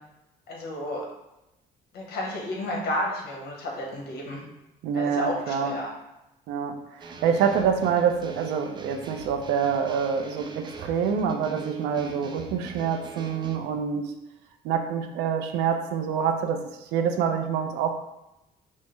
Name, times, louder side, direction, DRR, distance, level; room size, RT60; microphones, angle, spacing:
voice 1, 0.5-1.1 1.9-4.4 4.9-5.9, left 1 dB, 70° left, -1 dB, 1.2 m, -31 dB
voice 2, 4.8-5.7 6.5-14.1 14.6-17.9, right 7 dB, 90° right, 5 dB, 0.5 m, -26 dB
sound 1, 7.0-13.6, right 3 dB, 25° right, 0.4 m, -42 dB
5.3 x 2.0 x 3.1 m, 0.92 s
cardioid pair, 110°, 17 cm